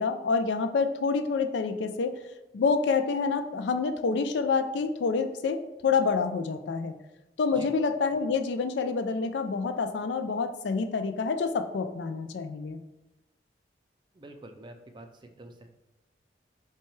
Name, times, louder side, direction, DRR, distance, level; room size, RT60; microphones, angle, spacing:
voice 1, 0.0-2.2 2.5-6.9 7.4-12.8, left 4 dB, 80° left, 8 dB, 0.4 m, -27 dB
voice 2, 14.1-15.7, right 1 dB, 25° right, 5 dB, 0.4 m, -46 dB
5.7 x 2.3 x 3.1 m, 1.0 s
head